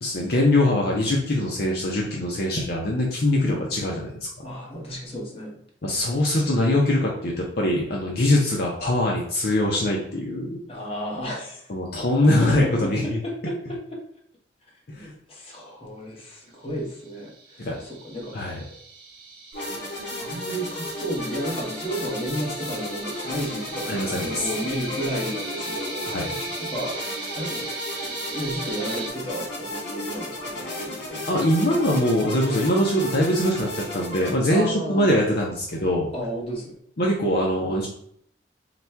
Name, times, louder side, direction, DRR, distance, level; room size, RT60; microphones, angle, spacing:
voice 1, 0.0-4.3 5.8-10.6 11.7-13.2 15.0-15.1 17.6-17.8 18.3-18.6 23.9-24.5 26.1-26.3 31.3-36.1 37.0-37.9, left 1 dB, 60° left, -2 dB, 0.7 m, -22 dB
voice 2, 4.4-5.6 10.7-11.7 12.2-14.0 14.9-18.4 19.7-26.3 26.6-26.9 27.3-27.7 28.0-31.4 34.5-35.2 36.1-36.7, equal, 35° left, -2 dB, 1.1 m, -33 dB
sound 1, 16.9-29.1, right 3 dB, 55° right, 1.2 m, -38 dB
sound 2, 19.5-34.3, left 1 dB, 90° left, 1.6 m, -34 dB
4.1 x 2.2 x 4.4 m, 0.68 s
head